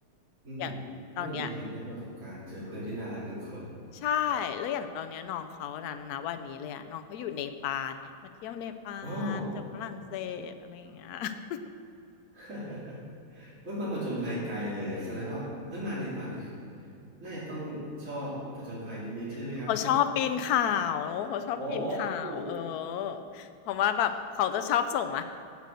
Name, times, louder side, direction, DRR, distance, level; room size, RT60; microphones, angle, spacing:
voice 1, 0.4-0.8 1.2-3.7 9.0-9.5 12.3-13.0 13.3-16.5 17.2-19.9 21.5-22.4, equal, 35° right, -10 dB, 3.2 m, -36 dB
voice 2, 1.2-1.5 3.9-8.1 8.4-11.6 19.7-25.2, left 9 dB, 80° left, 9 dB, 0.8 m, -31 dB
8.1 x 7.7 x 6.8 m, 2.6 s
omnidirectional pair, 2.3 m